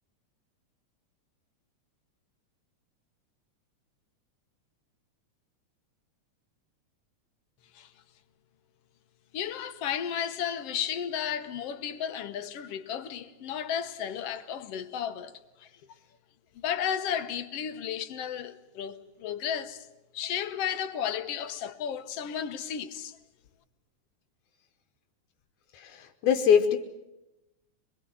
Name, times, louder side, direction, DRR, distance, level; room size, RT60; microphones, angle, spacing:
voice 1, 9.3-15.3 15.6-15.7 16.5-19.9 20.1-23.2, left 9 dB, 65° left, 1.9 m, -33 dB
voice 2, 25.7-26.8, left 7 dB, 80° left, 2.5 m, -23 dB
25.0 x 22.0 x 8.0 m
omnidirectional pair, 3.4 m